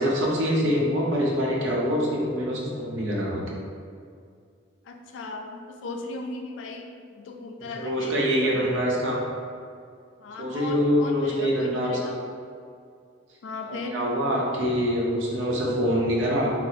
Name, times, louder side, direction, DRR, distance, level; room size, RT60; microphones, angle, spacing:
voice 1, 0.0-3.4 7.8-9.2 10.4-12.0 13.7-16.5, equal, 75° right, -3 dB, 0.6 m, -25 dB
voice 2, 4.9-8.7 10.2-12.2 13.4-14.0, left 3 dB, 70° left, 3 dB, 0.3 m, -37 dB
2.6 x 2.0 x 4.0 m, 2.3 s
head